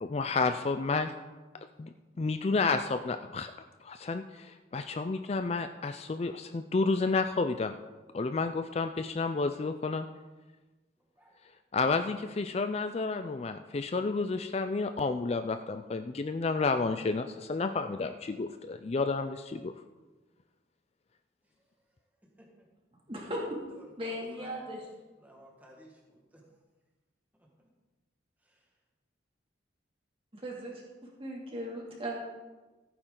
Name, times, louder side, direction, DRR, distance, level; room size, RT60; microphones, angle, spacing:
voice 1, 0.0-1.1 1.8-3.5 3.8-7.7 8.1-10.1 11.7-19.7, left 3 dB, 35° left, 8 dB, 0.4 m, -31 dB
voice 2, 22.2-22.7 23.7-24.7 25.2-26.5 27.4-27.5 28.4-28.7, right 1 dB, 10° right, -1 dB, 1.7 m, -56 dB
voice 3, 23.1-23.4 24.0-24.8 30.3-32.2, equal, 30° right, -2 dB, 2.5 m, -38 dB
15.0 x 9.0 x 3.8 m, 1.2 s
head